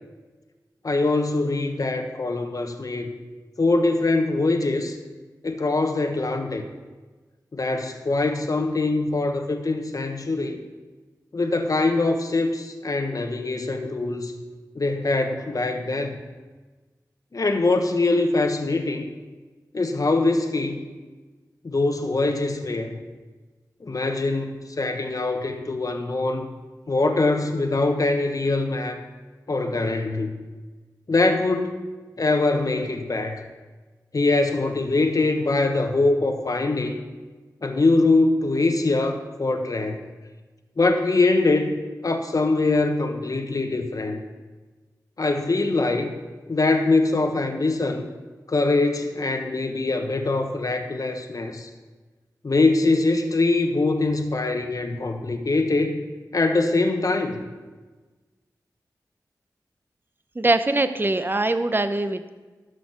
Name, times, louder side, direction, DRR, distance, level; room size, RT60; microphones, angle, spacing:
voice 1, 0.8-3.1 3.6-4.9 5.4-6.6 7.5-10.6 11.3-14.3 14.7-16.2 17.3-19.1 19.7-20.8 21.6-23.0 23.8-24.5 24.8-26.5 26.9-29.0 29.5-30.3 31.1-31.7 32.2-33.4 34.1-37.0 37.6-40.0 40.8-41.8 42.0-44.2 45.2-46.1 46.5-48.0 48.5-51.7 52.4-56.0 56.3-57.4, left 2 dB, 55° left, 6 dB, 1.2 m, -23 dB
voice 2, 60.3-62.3, right 2 dB, 30° right, 10 dB, 0.8 m, -22 dB
13.0 x 6.4 x 6.2 m, 1.3 s
cardioid pair, 40°, 7 cm